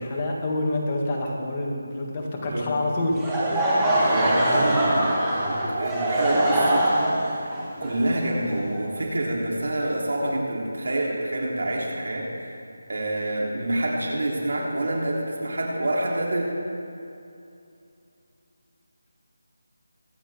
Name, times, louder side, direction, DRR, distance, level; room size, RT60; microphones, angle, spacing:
voice 1, 0.0-3.8 4.4-4.9 5.3-5.7, left 1 dB, 20° left, -2 dB, 1.8 m, -28 dB
Laughter / Crowd, 3.1-9.1, right 1 dB, 5° right, 1.7 m, -23 dB
voice 2, 4.0-7.5 7.8-12.5 12.9-16.5, right 1 dB, 70° right, -3 dB, 3.2 m, -27 dB
23.5 x 8.9 x 3.6 m, 2.6 s
figure-of-eight pair, 170°, 0 cm